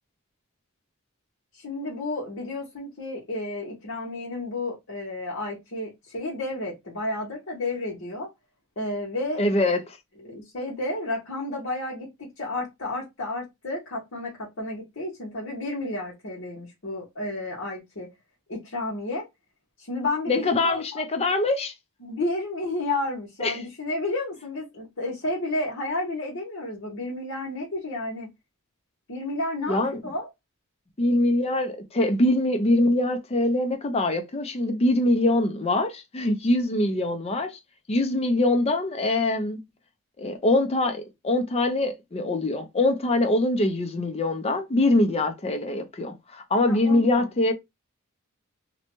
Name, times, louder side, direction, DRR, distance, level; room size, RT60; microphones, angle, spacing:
voice 1, 1.5-8.3 8.8-9.4 10.2-18.1 18.5-19.3 19.8-21.0 22.0-28.3 29.1-30.3 46.6-47.3, left 2 dB, 60° left, 1.0 m, -31 dB
voice 2, 9.4-9.8 20.3-21.7 23.4-23.5 29.7-30.0 31.0-37.6 37.9-39.6 40.2-47.5, left 2 dB, 30° left, 0.5 m, -23 dB
2.6 x 2.2 x 2.9 m
head